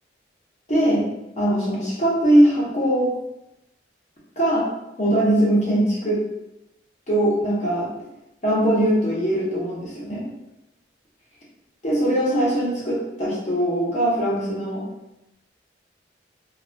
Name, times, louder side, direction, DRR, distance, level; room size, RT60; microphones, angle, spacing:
voice 1, 0.7-1.0 1.4-3.1 4.4-4.7 5.0-6.2 7.1-7.9 8.4-10.2 11.8-14.8, right 1 dB, 40° left, -5 dB, 0.7 m, -21 dB
2.3 x 2.1 x 2.5 m, 0.92 s
head